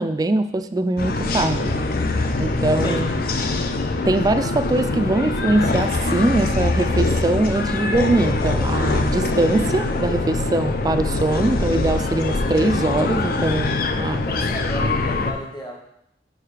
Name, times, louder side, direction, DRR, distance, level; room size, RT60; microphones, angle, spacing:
voice 1, 0.0-1.9 2.4-3.1 4.1-14.3, right 2 dB, 20° right, 10 dB, 0.3 m, -22 dB
sound 1, 1.0-15.3, left 2 dB, 55° left, 0.5 m, -23 dB
voice 2, 14.3-15.9, equal, 25° left, 0 dB, 1.0 m, -33 dB
5.4 x 4.7 x 4.9 m, 0.77 s
head